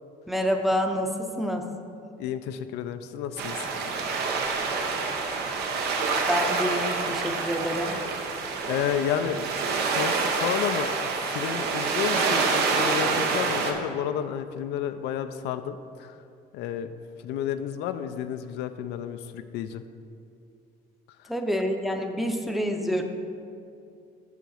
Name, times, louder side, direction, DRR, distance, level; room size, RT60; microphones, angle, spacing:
voice 1, 0.3-1.7 6.3-8.0 21.3-23.0, equal, ahead, 4 dB, 0.6 m, -27 dB
voice 2, 2.2-3.7 8.7-9.5 9.9-11.0 11.2-16.2 16.5-16.9 17.2-19.8, left 9 dB, 90° left, 10 dB, 0.4 m, -31 dB
sound 1, 3.4-13.7, right 4 dB, 75° right, 0.9 m, -27 dB
8.3 x 3.8 x 6.3 m, 2.5 s
cardioid pair, 110°, 17 cm